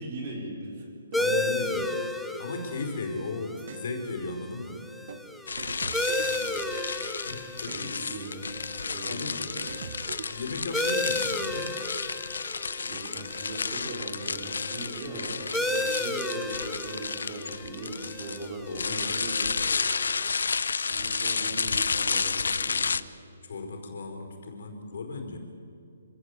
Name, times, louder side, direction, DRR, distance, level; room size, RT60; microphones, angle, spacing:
voice 1, 0.0-1.3 6.2-6.6 7.7-8.5 8.8-9.5 12.8-19.5 20.9-22.9, right 2 dB, 35° right, 0 dB, 5.0 m, -39 dB
voice 2, 1.1-4.8 7.2-8.1 9.1-9.4 10.3-11.8 18.7-19.2 21.4-21.7 23.4-25.4, left 3 dB, 55° left, 4 dB, 4.7 m, -36 dB
sound 1, 1.1-20.3, left 1 dB, ahead, 0.8 m, -34 dB
sound 2, 3.6-3.9 5.1-5.2 5.6-7.0 7.6-7.9 9.1-9.2 9.6-10.7, right 6 dB, 50° right, 1.4 m, -42 dB
sound 3, 5.5-23.0, left 5 dB, 85° left, 0.8 m, -31 dB
26.0 x 17.0 x 8.2 m, 2.6 s
hypercardioid pair, 170°, 0 cm